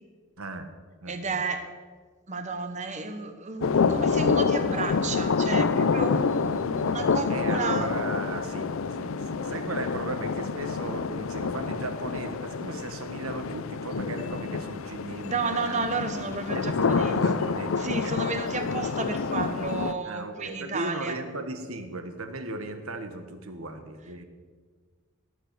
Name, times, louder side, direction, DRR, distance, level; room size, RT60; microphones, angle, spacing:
voice 1, 0.4-0.7 1.0-1.4 7.3-16.0 16.5-18.2 20.0-24.2, right 2 dB, 75° right, 8 dB, 1.4 m, -36 dB
voice 2, 1.1-1.7 2.3-7.9 15.2-17.5 17.8-21.2, right 4 dB, 35° right, 8 dB, 1.1 m, -32 dB
sound 1, 3.6-19.9, left 5 dB, 65° left, 0.5 m, -27 dB
17.5 x 6.7 x 6.8 m, 1.5 s
head